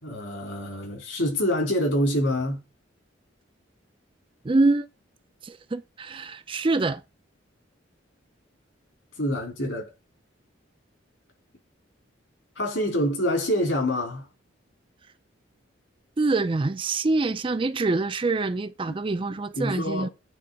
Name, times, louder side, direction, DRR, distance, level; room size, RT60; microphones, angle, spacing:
voice 1, 0.0-2.6 9.2-9.9 12.5-14.3 18.9-19.0 19.5-20.1, equal, 70° left, 3.4 m, -26 dB
voice 2, 4.4-4.9 5.4-7.0 16.2-20.1, right 3 dB, 25° right, 0.4 m, -25 dB
9.3 x 3.2 x 5.2 m
head